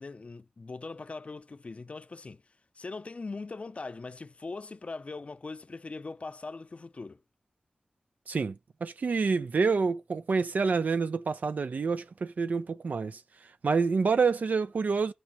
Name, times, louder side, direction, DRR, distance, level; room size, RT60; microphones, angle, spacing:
voice 1, 0.0-2.4 2.7-7.2, left 3 dB, 50° left, 0.5 m, -41 dB
voice 2, 8.3-13.2 13.6-15.1, right 4 dB, 80° right, 0.5 m, -27 dB
15.5 x 6.3 x 3.1 m
wide cardioid pair, 80°, 3 cm